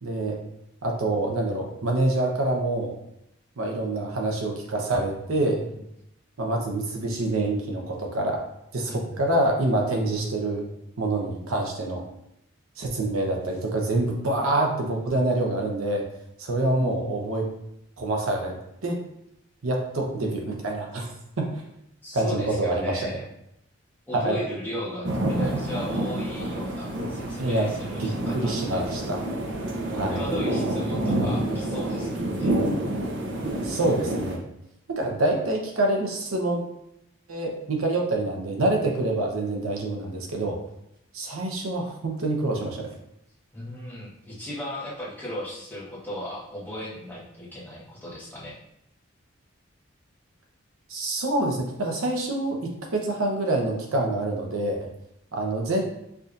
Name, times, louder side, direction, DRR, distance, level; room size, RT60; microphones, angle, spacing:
voice 1, 0.0-0.4 0.8-3.0 3.6-5.6 6.4-8.4 8.7-10.7 11.0-12.0 12.8-16.0 16.4-17.5 18.0-18.6 18.8-19.0 19.6-21.6 22.1-23.1 24.1-24.4 27.4-27.7 28.0-29.2 29.9-30.2 33.6-34.4 34.9-36.6 37.3-40.6 41.1-42.9 50.9-54.9 55.3-55.8, right 2 dB, 90° right, 1 dB, 0.8 m, -26 dB
voice 2, 5.4-5.8 8.9-9.2 16.8-17.1 22.0-23.2 24.1-28.8 30.1-32.6 43.5-48.6, left 1 dB, 10° left, -7 dB, 1.0 m, -36 dB
sound 1, 25.0-34.4, right 1 dB, 60° right, 0.6 m, -28 dB
4.6 x 2.7 x 2.5 m, 0.81 s
head